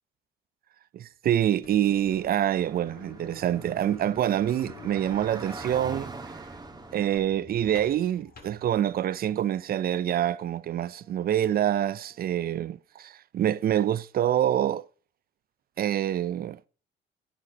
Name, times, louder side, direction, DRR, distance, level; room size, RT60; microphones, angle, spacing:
voice 1, 0.9-6.4 6.9-14.8 15.8-16.6, right 11 dB, 50° right, 0.5 m, -26 dB
sound 1, 1.5-9.3, left 4 dB, 50° left, 2.1 m, -49 dB
Car / Traffic noise roadway noise, 2.1-7.2, right 3 dB, 20° right, 1.7 m, -43 dB
Brass instrument, 8.5-12.6, left 1 dB, 85° left, 5.2 m, -63 dB
11.0 x 9.7 x 2.9 m
supercardioid pair, 65°, 20 cm